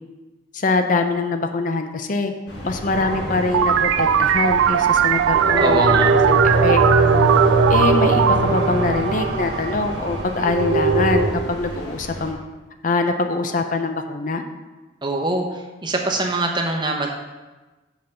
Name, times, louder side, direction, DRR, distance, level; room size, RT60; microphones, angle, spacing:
voice 1, 0.5-2.3 2.6-6.8 7.7-12.4 12.8-14.4, left 3 dB, 40° left, 6 dB, 0.5 m, -23 dB
sound 1, 2.5-12.3, equal, 60° left, 1.6 m, -34 dB
sound 2, 2.9-4.6 5.3-11.3, right 2 dB, 70° right, 1.2 m, -21 dB
sound 3, 3.5-9.8, right 9 dB, 90° right, 0.3 m, -19 dB
voice 2, 5.6-6.1 15.0-17.1, right 2 dB, 25° right, 2 dB, 0.8 m, -23 dB
5.9 x 5.5 x 6.7 m, 1.2 s
head